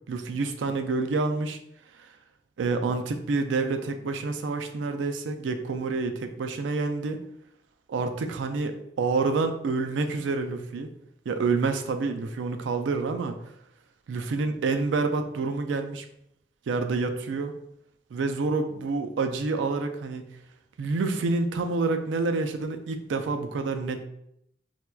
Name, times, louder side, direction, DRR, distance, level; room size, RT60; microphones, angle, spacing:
voice 1, 0.1-1.6 2.6-7.2 7.9-10.9 11.3-13.4 14.1-16.0 16.7-17.5 18.1-20.3 20.8-24.0, right 3 dB, 90° right, 7 dB, 0.4 m, -28 dB
4.3 x 2.2 x 2.2 m, 0.77 s
head